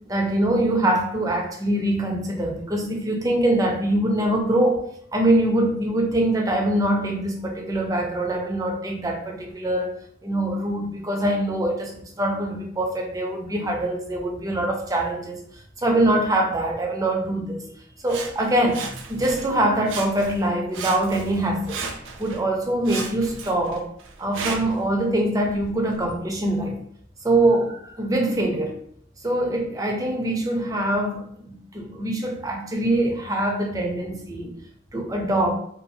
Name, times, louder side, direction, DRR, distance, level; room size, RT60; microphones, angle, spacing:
voice 1, 0.0-9.9 10.2-17.7 18.0-23.9 24.2-26.8 27.2-28.8 29.2-34.5 34.9-35.5, right 1 dB, 20° right, 0.4 m, -24 dB
Sawing, 18.1-19.5 19.8-20.5 20.7-22.4 22.8-24.8 25.5-25.6, right 5 dB, 85° right, 0.4 m, -35 dB
2.6 x 2.3 x 2.6 m
head